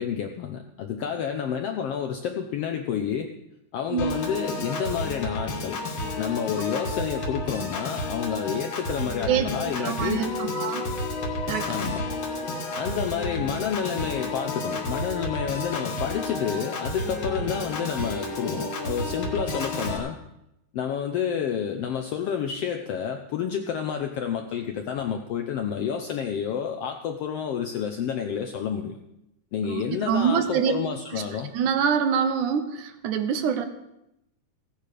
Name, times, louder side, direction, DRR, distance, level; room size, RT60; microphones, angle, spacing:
voice 1, 0.0-3.3 3.7-5.8 6.2-10.3 11.7-12.0 12.8-20.2 20.7-29.0 29.5-31.5, left 8 dB, 75° left, 5 dB, 1.4 m, -29 dB
Piano / Organ, 4.0-20.0, left 2 dB, 50° left, 2.1 m, -31 dB
voice 2, 9.3-10.9 11.5-11.7 29.6-30.7 31.1-31.2 31.5-33.7, right 7 dB, 75° right, 9 dB, 2.3 m, -25 dB
16.0 x 9.2 x 4.9 m, 0.83 s
omnidirectional pair, 3.6 m